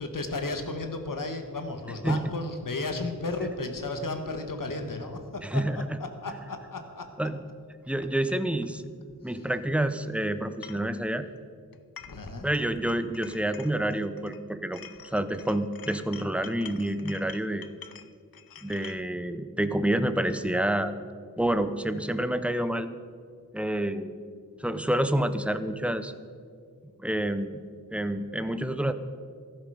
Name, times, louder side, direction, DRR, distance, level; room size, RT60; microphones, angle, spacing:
voice 1, 0.0-7.1 9.2-9.5 12.0-12.5, left 2 dB, 65° left, 6 dB, 1.6 m, -34 dB
voice 2, 5.4-5.7 7.2-7.3 7.9-8.8 9.2-11.3 12.4-14.8 15.1-17.7 18.6-20.9 21.4-22.9 23.5-24.1 24.6-26.1 27.0-27.6 27.9-28.9, right 1 dB, 5° right, 10 dB, 0.8 m, -28 dB
sound 1, 10.6-10.9 11.7-12.3 12.5-14.4 14.7-19.0, left 8 dB, 80° left, 0.7 m, -47 dB
14.5 x 12.5 x 5.0 m, 2.2 s
wide cardioid pair, 60°, 35 cm